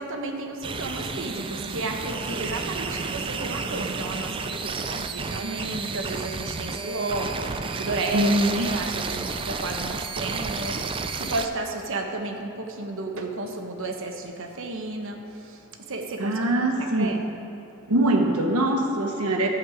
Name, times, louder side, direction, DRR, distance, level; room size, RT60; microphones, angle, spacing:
voice 1, 0.0-17.2 17.6-17.7, right 2 dB, 60° right, 3 dB, 1.1 m, -33 dB
sound 1, 0.6-11.5, right 4 dB, 25° right, 0.4 m, -31 dB
voice 2, 8.1-8.7 16.2-17.2 17.9-19.5, right 1 dB, 80° right, 2 dB, 1.3 m, -23 dB
12.0 x 8.1 x 5.0 m, 2.7 s
head